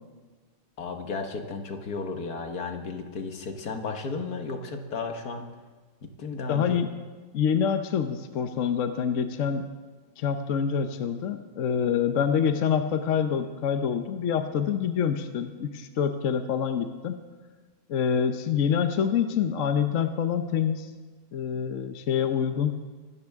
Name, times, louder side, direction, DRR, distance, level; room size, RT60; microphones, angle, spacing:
voice 1, 0.8-5.5 6.0-6.9, left 4 dB, 75° left, 5 dB, 1.9 m, -34 dB
voice 2, 6.5-6.9 7.3-9.7 10.2-17.2 17.9-20.9 21.3-22.8, left 7 dB, 60° left, 8 dB, 1.1 m, -26 dB
25.5 x 13.0 x 3.6 m, 1.3 s
omnidirectional pair, 1.6 m